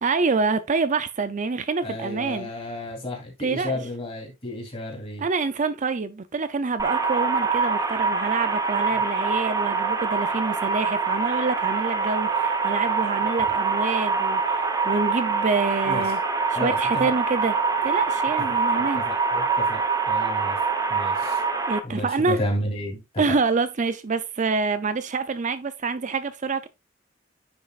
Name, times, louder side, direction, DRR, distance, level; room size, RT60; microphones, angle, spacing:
voice 1, 0.0-2.5 3.4-3.8 5.2-14.6 14.8-16.2 16.5-17.6 17.8-19.0 21.7-22.4 23.2-26.7, right 4 dB, 40° right, 0.5 m, -26 dB
voice 2, 1.8-5.3 15.9-16.0 16.5-16.7 17.0-17.1 18.5-18.6 19.0-19.8 20.1-20.6 20.9-21.4 21.8-23.0, left 1 dB, 30° left, 3.2 m, -32 dB
sound 1, 6.8-21.8, right 5 dB, 20° right, 1.0 m, -24 dB
9.7 x 5.3 x 2.4 m
head